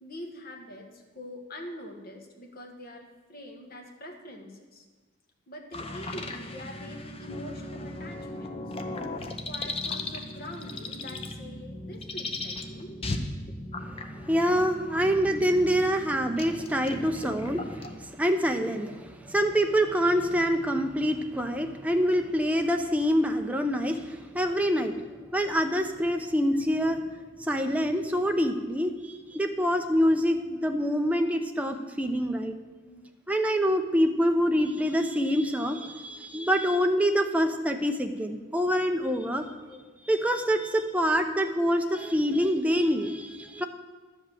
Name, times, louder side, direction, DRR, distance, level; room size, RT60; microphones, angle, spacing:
voice 1, 0.0-4.8 5.5-8.8 9.4-13.0 15.0-15.8 16.3-16.4 21.9-22.1 29.4-29.6 32.9-33.1 39.7-39.8, equal, 45° left, 2 dB, 1.4 m, -44 dB
sound 1, 5.7-18.0, left 2 dB, 25° left, 0.7 m, -37 dB
voice 2, 13.8-25.0 25.3-27.0 27.4-32.5 33.3-39.5 40.1-43.7, equal, 5° right, 5 dB, 0.6 m, -26 dB
11.5 x 5.3 x 7.8 m, 1.3 s
head